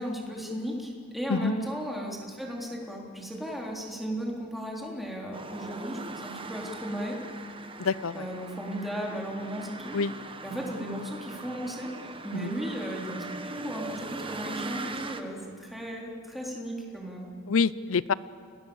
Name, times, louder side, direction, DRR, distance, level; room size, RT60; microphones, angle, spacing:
voice 1, 0.0-7.2 8.1-10.0 10.4-11.9 12.2-17.3, equal, ahead, -2 dB, 3.8 m, -35 dB
sound 1, 5.3-15.2, right 3 dB, 25° right, 1.3 m, -40 dB
voice 2, 7.8-8.3 9.9-10.1 12.3-12.5 17.5-18.1, left 5 dB, 70° left, 18 dB, 0.6 m, -26 dB
29.5 x 20.5 x 7.2 m, 2.4 s
head